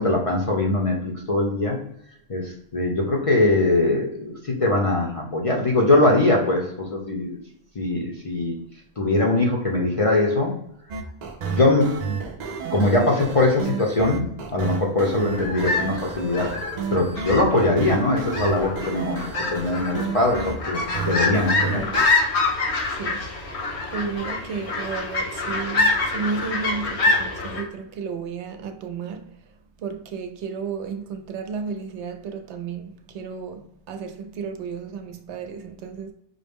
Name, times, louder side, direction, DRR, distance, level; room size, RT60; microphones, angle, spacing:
voice 1, 0.0-1.8 2.3-7.4 7.8-8.5 9.0-10.6 11.5-12.2 12.7-16.5 16.9-19.2 19.5-21.8, left 2 dB, 40° left, 0.5 m, -22 dB
sound 1, 10.9-22.0, right 5 dB, 55° right, 0.5 m, -31 dB
sound 2, 15.2-27.6, left 3 dB, 75° left, 1.2 m, -26 dB
voice 2, 21.7-22.1 22.9-23.3 23.9-29.3 29.8-36.1, right 5 dB, 80° right, 0.9 m, -33 dB
5.3 x 2.0 x 3.4 m
omnidirectional pair, 1.2 m